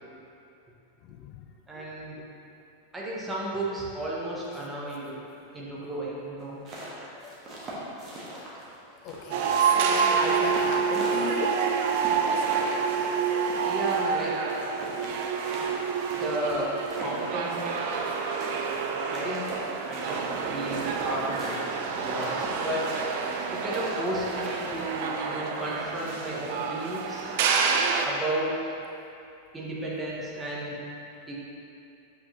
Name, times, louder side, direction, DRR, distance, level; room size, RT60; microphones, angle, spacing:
voice 1, 1.1-1.4 6.5-7.3 9.0-11.6, left 7 dB, 40° left, 3 dB, 0.3 m, -37 dB
voice 2, 1.7-2.2 2.9-5.2 5.5-6.6 13.6-14.3 16.2-17.8 19.1-19.5 19.9-21.6 22.0-23.0 23.5-27.3 28.0-28.6 29.5-30.7 31.3-31.4, right 1 dB, 10° right, -5 dB, 1.3 m, -33 dB
sound 1, 6.4-8.8 9.1-11.6 12.0-14.2 14.5-14.6 14.8-18.1 18.4-21.7 22.0-22.5 22.8-24.9, right 1 dB, 30° right, 1.4 m, -40 dB
sound 2, 9.3-28.1, right 6 dB, 50° right, 0.5 m, -28 dB
7.4 x 5.7 x 2.9 m, 2.7 s
figure-of-eight pair, 90°, 0 cm